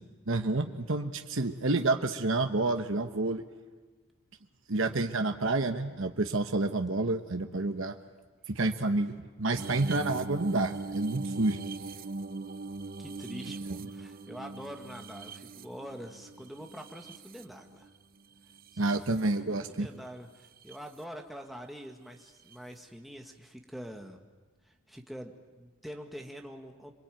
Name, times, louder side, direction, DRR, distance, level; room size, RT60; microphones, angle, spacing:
voice 1, 0.3-3.4 4.7-7.9 8.5-9.1 9.4-11.6 13.7-13.8 18.8-19.9, right 2 dB, 65° right, 6 dB, 1.2 m, -29 dB
sound 1, 9.6-17.9 18.5-19.2 20.4-20.8 22.5-22.6, right 3 dB, 45° right, 0.7 m, -40 dB
voice 2, 13.0-17.9 18.7-18.9 19.4-24.2 24.6-26.9, equal, ahead, 3 dB, 1.7 m, -45 dB
27.0 x 23.0 x 9.1 m, 1.3 s
head